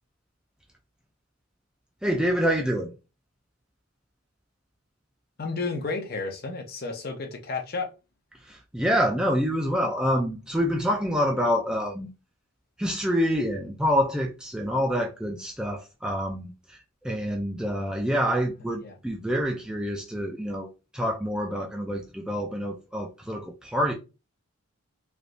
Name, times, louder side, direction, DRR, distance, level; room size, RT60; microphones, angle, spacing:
voice 1, 2.0-2.9 8.4-12.1 12.8-16.8 17.0-20.7 20.9-23.9, equal, 5° right, 0.3 m, -27 dB
voice 2, 5.4-7.9 18.8-19.0, left 3 dB, 45° left, 0.6 m, -32 dB
3.3 x 2.6 x 2.5 m
head